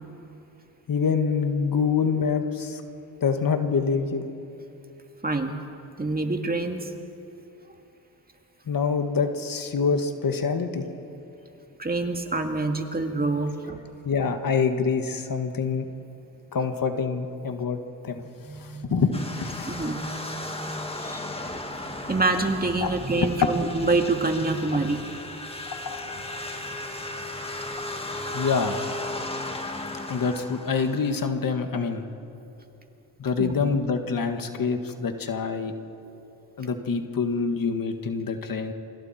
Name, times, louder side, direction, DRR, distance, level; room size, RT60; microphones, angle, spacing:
voice 1, 0.9-2.8 3.2-4.4 8.7-10.9 14.0-15.9 16.5-17.8 18.0-18.2 18.6-19.7 22.8-22.9 25.9-26.4 28.3-28.8 30.1-32.1 33.2-35.7 36.6-38.7, left 5 dB, 55° left, 6 dB, 2.0 m, -26 dB
voice 2, 5.2-5.6 6.0-6.9 11.8-13.8 18.4-19.0 19.7-20.0 20.9-21.3 21.7-25.0 33.4-33.6, right 3 dB, 20° right, 4 dB, 2.3 m, -26 dB
sound 1, 19.1-31.2, left 1 dB, 15° left, 2.3 m, -35 dB
27.5 x 25.5 x 4.5 m, 2.9 s
cardioid pair, 65°, 41 cm